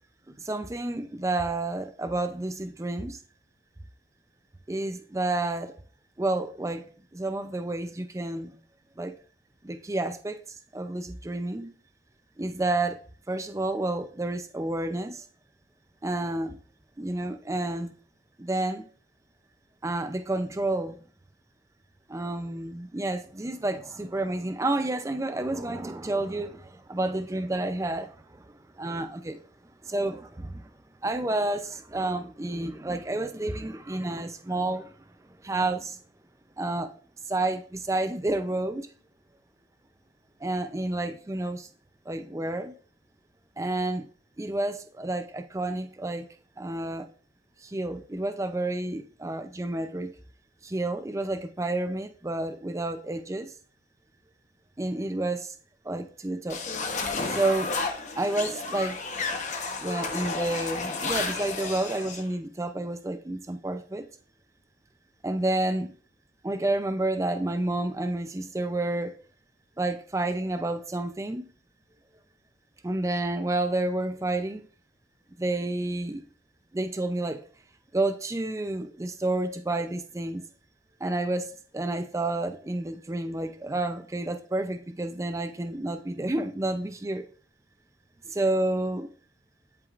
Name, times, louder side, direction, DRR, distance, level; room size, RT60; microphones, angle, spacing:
voice 1, 0.4-3.2 4.7-5.8 6.2-6.9 7.1-8.6 9.0-9.2 9.6-10.4 10.7-11.7 12.4-13.0 13.3-15.2 16.0-16.6 17.0-17.9 18.4-18.9 19.8-21.0 22.1-29.4 29.8-30.6 31.0-35.0 35.4-36.0 36.6-36.9 37.3-38.9 40.4-41.7 42.1-42.7 43.6-44.1 44.4-46.3 46.6-47.1 47.6-50.1 50.6-53.5 54.8-55.5 55.8-56.6 57.3-57.7 58.2-59.0 59.8-64.1 65.2-65.9 66.4-69.2 69.8-71.5 72.8-74.6 75.4-76.2 76.7-77.4 77.9-80.4 81.0-87.3 88.3-89.1, right 2 dB, 15° right, 0.4 m, -30 dB
sound 1, 56.5-62.2, left 4 dB, 40° left, 0.9 m, -32 dB
10.5 x 4.7 x 2.4 m
head